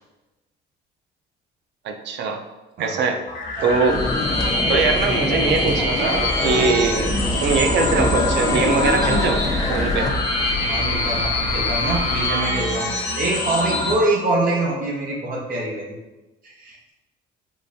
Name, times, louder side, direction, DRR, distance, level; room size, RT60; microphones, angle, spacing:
voice 1, 1.8-2.4 2.8-3.2 3.6-4.0 4.7-7.1 7.4-10.1, right 5 dB, 65° right, 4 dB, 0.4 m, -22 dB
sound 1, 3.3-13.9, left 2 dB, 40° left, 0.9 m, -25 dB
sound 2, 3.9-10.1, left 2 dB, 20° left, 0.5 m, -25 dB
sound 3, 7.1-12.3, left 1 dB, 85° left, 0.9 m, -29 dB
voice 2, 10.5-12.9 13.2-16.0 16.4-16.8, right 2 dB, 50° right, -3 dB, 0.8 m, -25 dB
3.7 x 2.6 x 2.4 m, 1.1 s
cardioid pair, 95°, 19 cm